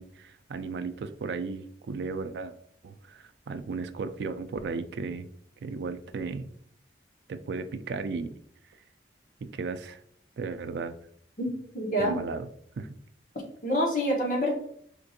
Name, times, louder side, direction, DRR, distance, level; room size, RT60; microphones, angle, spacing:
voice 1, 0.0-2.5 2.8-5.3 5.6-6.5 7.3-8.3 9.4-10.0 10.4-10.9 12.0-12.5 12.8-13.0, right 4 dB, 70° right, 10 dB, 0.3 m, -35 dB
voice 2, 11.4-12.2 13.6-14.5, equal, 45° left, -1 dB, 1.0 m, -27 dB
4.4 x 2.5 x 2.7 m, 0.66 s
head